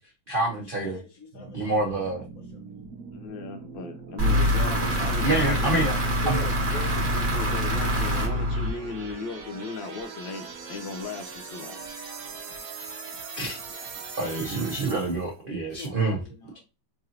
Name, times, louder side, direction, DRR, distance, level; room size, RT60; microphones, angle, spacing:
voice 1, 0.3-1.0 1.5-2.2 5.2-5.9 6.2-6.4 13.4-13.9 14.2-16.2, right 2 dB, 80° right, 0.4 m, -27 dB
voice 2, 0.9-1.8 15.7-16.7, left 4 dB, 50° left, 1.1 m, -46 dB
sound 1, 1.3-15.3, right 5 dB, 60° right, 1.0 m, -41 dB
voice 3, 3.1-5.9 6.2-11.8, left 4 dB, 75° left, 1.2 m, -37 dB
sound 2, 4.2-9.1, equal, 35° right, 1.3 m, -25 dB
4.7 x 2.5 x 2.8 m
omnidirectional pair, 2.2 m